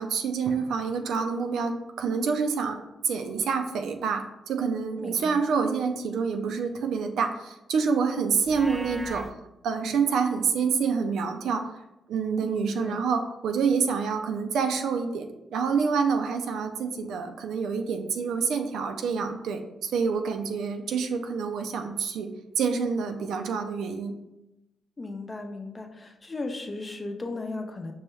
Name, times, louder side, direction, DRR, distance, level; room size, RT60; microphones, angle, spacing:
voice 1, 0.0-9.3 9.6-11.7 12.1-24.2, right 5 dB, 75° right, 5 dB, 0.4 m, -27 dB
voice 2, 5.0-5.4 12.4-13.0 25.0-27.9, left 2 dB, 35° left, 4 dB, 0.7 m, -36 dB
Livestock farm animals working animals, 8.4-9.3, right 1 dB, 10° right, 0.4 m, -38 dB
5.4 x 2.2 x 3.1 m, 0.91 s
hypercardioid pair, 45°, 0 cm